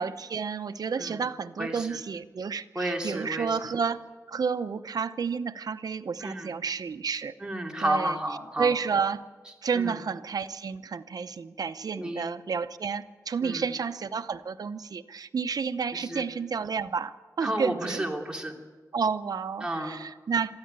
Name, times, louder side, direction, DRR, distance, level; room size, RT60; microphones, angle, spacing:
voice 1, 0.0-7.3 7.8-8.2 8.6-9.2 9.6-18.0 18.9-20.5, right 5 dB, 85° right, 12 dB, 0.8 m, -31 dB
voice 2, 1.6-2.0 2.7-3.6 6.2-6.5 7.4-8.7 9.7-10.0 12.0-12.2 13.4-13.7 15.9-16.2 17.4-18.5 19.6-20.0, right 1 dB, 15° right, 0 dB, 2.9 m, -31 dB
23.0 x 14.0 x 8.9 m, 1.3 s
wide cardioid pair, 105°, 6 cm